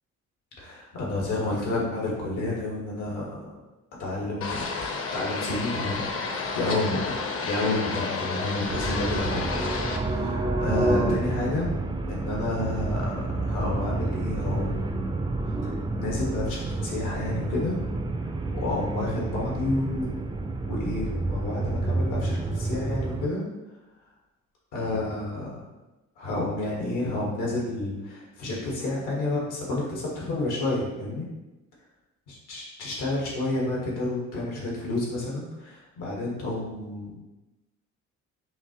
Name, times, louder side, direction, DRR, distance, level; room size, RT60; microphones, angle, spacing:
voice 1, 0.6-3.4 4.0-4.7 5.1-7.0 7.4-11.7 12.1-15.1 15.6-17.8 18.2-20.1 20.6-23.4 24.7-25.6 26.2-31.2 32.5-37.2, left 2 dB, 85° left, -4 dB, 1.5 m, -30 dB
sound 1, 4.4-10.0, left 4 dB, 45° left, 0.7 m, -31 dB
sound 2, 8.7-23.3, right 2 dB, 15° right, 0.3 m, -29 dB
5.7 x 2.5 x 2.9 m, 1.0 s
cardioid pair, 90°, 30 cm